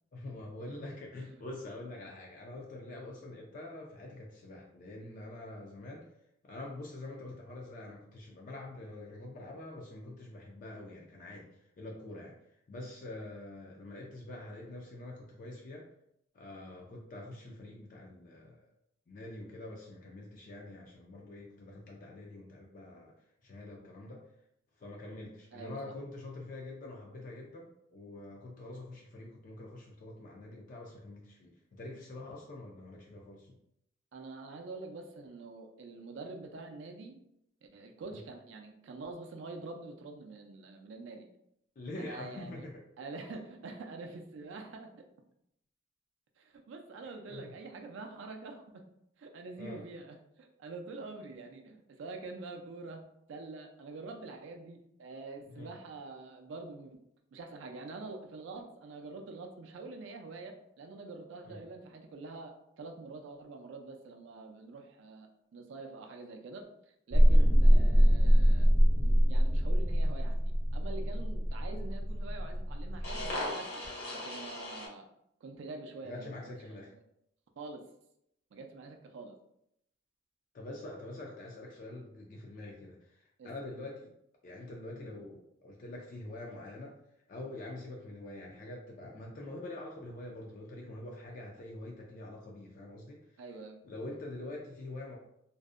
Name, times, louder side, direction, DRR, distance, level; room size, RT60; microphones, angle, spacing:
voice 1, 0.1-6.1 6.4-12.3 12.7-15.9 16.3-18.7 19.1-23.1 23.4-24.2 24.8-33.6 38.1-38.2 41.8-42.8 47.3-47.5 49.6-49.8 55.5-55.7 61.5-61.6 67.3-67.5 76.0-76.9 80.5-84.1 84.4-87.0 87.3-93.2 93.8-95.2, left 2 dB, 40° left, -2 dB, 0.3 m, -45 dB
voice 2, 1.2-1.5 25.5-25.9 34.1-37.2 37.7-41.3 42.0-42.7 43.0-44.9 46.4-48.8 49.2-57.0 57.3-68.7 69.0-73.8 74.1-75.1 75.4-76.4 76.9-77.0 77.6-77.9 78.5-79.3 83.4-83.5 93.4-93.8, right 3 dB, 60° right, 4 dB, 0.3 m, -46 dB
sound 1, 67.1-74.9, equal, 55° left, 0.8 m, -25 dB
2.6 x 2.0 x 2.4 m, 0.77 s
head